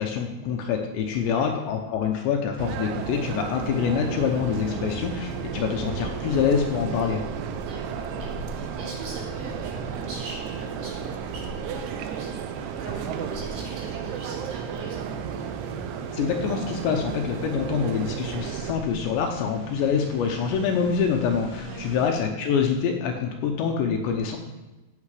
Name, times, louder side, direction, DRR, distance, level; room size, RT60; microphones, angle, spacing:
voice 1, 0.0-7.2 16.1-24.4, left 6 dB, 75° left, 3 dB, 2.8 m, -25 dB
voice 2, 1.1-1.6 7.6-15.2 21.6-22.0, right 2 dB, 60° right, -4 dB, 5.8 m, -41 dB
sound 1, 2.6-18.7, right 8 dB, 80° right, 3.0 m, -33 dB
sound 2, 3.6-8.7, equal, 15° right, 2.4 m, -41 dB
sound 3, 5.4-22.1, equal, 35° right, 2.3 m, -42 dB
16.0 x 7.8 x 4.9 m, 1.1 s
omnidirectional pair, 5.6 m